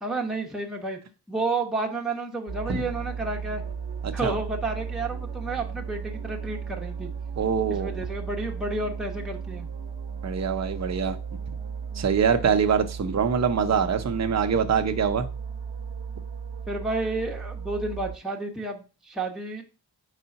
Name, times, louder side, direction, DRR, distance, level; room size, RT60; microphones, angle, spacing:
voice 1, 0.0-1.0 1.3-3.6 4.1-7.1 7.7-9.7 16.7-19.6, right 2 dB, ahead, 0.9 m, -31 dB
sound 1, 2.5-18.2, right 6 dB, 75° right, 0.9 m, -35 dB
voice 2, 4.0-4.3 7.4-7.9 10.2-11.2 12.0-15.3, right 6 dB, 40° right, 0.6 m, -24 dB
4.9 x 3.8 x 5.6 m
wide cardioid pair, 145°, 42 cm